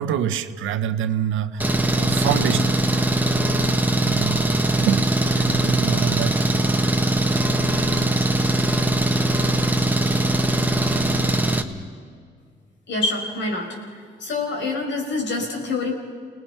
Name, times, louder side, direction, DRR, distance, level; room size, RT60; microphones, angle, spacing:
voice 1, 0.0-3.0 3.7-4.4 4.8-6.4, right 9 dB, 80° right, 10 dB, 1.0 m, -26 dB
Engine, 1.6-11.6, right 1 dB, 10° right, 1.6 m, -21 dB
voice 2, 12.9-13.8 14.2-15.9, left 3 dB, 65° left, 2 dB, 5.5 m, -26 dB
30.0 x 19.5 x 5.9 m, 2.1 s
cardioid pair, 90°, 20 cm